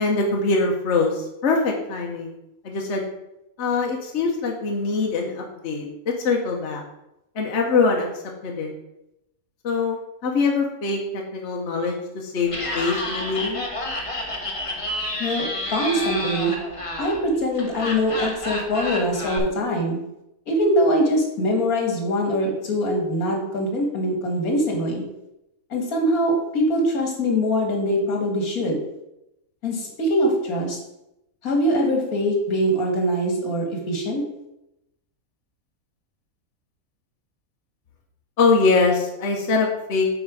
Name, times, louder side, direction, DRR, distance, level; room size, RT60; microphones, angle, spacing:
voice 1, 0.0-2.3 2.6-3.0 3.6-6.8 7.3-8.1 8.4-8.7 9.6-13.6 38.4-40.2, left 4 dB, 55° left, 0 dB, 1.2 m, -23 dB
Laughter, 12.4-19.4, left 1 dB, 25° left, 1.1 m, -30 dB
voice 2, 15.7-16.5 17.0-20.0 20.5-25.0 25.7-28.8 29.6-30.8 31.4-34.2, equal, 75° left, 1 dB, 2.1 m, -23 dB
8.5 x 4.3 x 4.8 m, 0.88 s
omnidirectional pair, 1.5 m